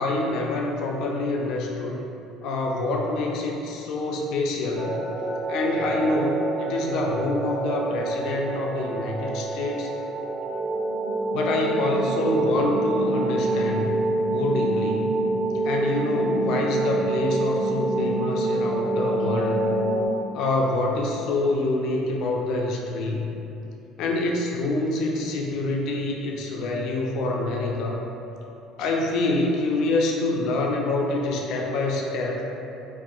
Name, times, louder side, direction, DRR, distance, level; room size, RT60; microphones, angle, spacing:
voice 1, 0.0-2.0 2.4-4.9 5.5-9.9 11.3-13.9 14.3-15.0 15.6-19.6 20.3-23.2 24.0-28.0 28.8-32.4, left 2 dB, 70° left, 0 dB, 0.3 m, -26 dB
sound 1, 4.7-20.1, right 2 dB, 50° right, 1.2 m, -26 dB
2.8 x 2.2 x 2.3 m, 2.8 s
supercardioid pair, 80°, 0 cm